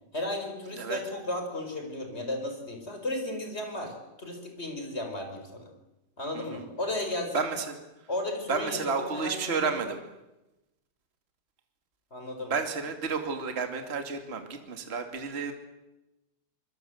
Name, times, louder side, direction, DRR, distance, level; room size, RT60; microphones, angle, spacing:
voice 1, 0.1-5.7 6.2-7.5 8.1-9.7 12.1-12.5, left 1 dB, 20° left, 4 dB, 5.1 m, -34 dB
voice 2, 6.3-6.6 7.3-7.7 8.5-10.0 12.5-15.5, right 5 dB, 25° right, 6 dB, 2.3 m, -31 dB
26.0 x 22.0 x 7.9 m, 0.97 s
omnidirectional pair, 3.3 m